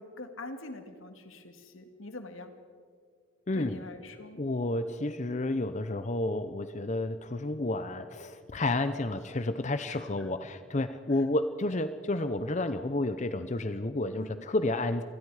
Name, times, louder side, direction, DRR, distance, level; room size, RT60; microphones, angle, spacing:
voice 1, 0.0-2.5 3.5-4.4 9.9-10.3 14.2-14.4, left 2 dB, 65° left, 7 dB, 2.1 m, -44 dB
voice 2, 3.5-3.8 4.4-15.0, left 2 dB, 35° left, 11 dB, 0.6 m, -31 dB
27.0 x 20.0 x 4.9 m, 2.2 s
head